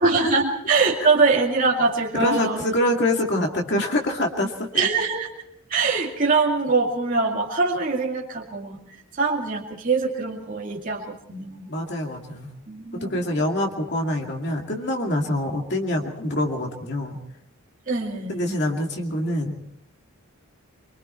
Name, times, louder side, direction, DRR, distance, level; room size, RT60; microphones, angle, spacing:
voice 1, 0.0-2.6 4.7-5.3 5.7-11.7 12.7-13.1 17.9-18.4, right 4 dB, 40° right, -3 dB, 2.4 m, -23 dB
voice 2, 2.1-4.7 11.7-12.5 12.9-17.2 18.3-19.5, left 1 dB, 50° left, 1 dB, 2.3 m, -25 dB
24.5 x 24.0 x 4.4 m, 0.75 s
head